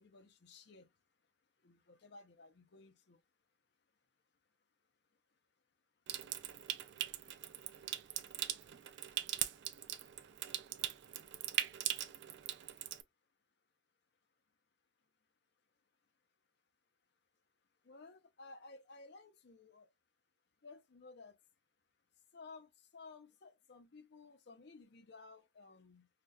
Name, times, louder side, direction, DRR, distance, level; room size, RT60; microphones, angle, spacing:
voice 1, 0.0-3.3 4.4-5.4 5.9-6.3 6.6-11.9 15.0-15.1 15.8-16.1 17.8-19.9 20.6-21.5 22.1-26.1, left 3 dB, 55° left, 0.5 m, -59 dB
Water tap faucet / Sink (filling or washing) / Trickle dribble, 6.1-13.0, right 12 dB, 55° right, 0.3 m, -41 dB
4.9 x 2.1 x 2.2 m
head